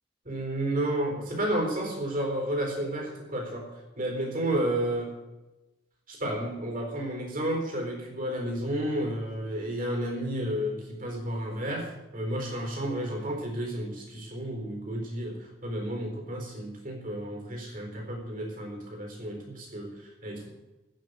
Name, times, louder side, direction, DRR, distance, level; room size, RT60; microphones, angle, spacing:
voice 1, 0.2-5.1 6.1-20.5, right 1 dB, 40° right, 1 dB, 4.2 m, -32 dB
15.5 x 6.2 x 9.5 m, 1.0 s
head